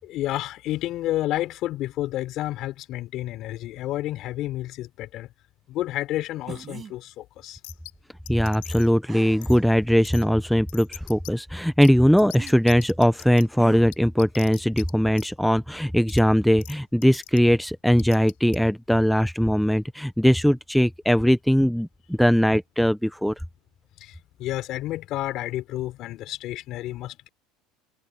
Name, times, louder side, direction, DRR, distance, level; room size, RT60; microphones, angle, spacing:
voice 1, 0.0-5.3 5.7-7.6 24.0-27.3, left 15 dB, 50° left, 4.8 m, -30 dB
sound 1, 6.5-6.9 9.1-9.7 10.4-10.5 12.3-12.6 13.6-13.8, right 7 dB, 25° right, 7.5 m, -40 dB
sound 2, 7.6-7.9 8.3-8.9 9.4-9.6 10.0-10.2 10.7-11.3 11.8-11.9 12.2-13.4 13.9-14.9 15.1-15.3 16.1-16.2 16.6-16.7 17.0-17.4 18.0-18.6, left 28 dB, 75° left, 7.4 m, -41 dB
voice 2, 8.3-23.3, equal, ahead, 0.5 m, -20 dB
supercardioid pair, 135°, 0 cm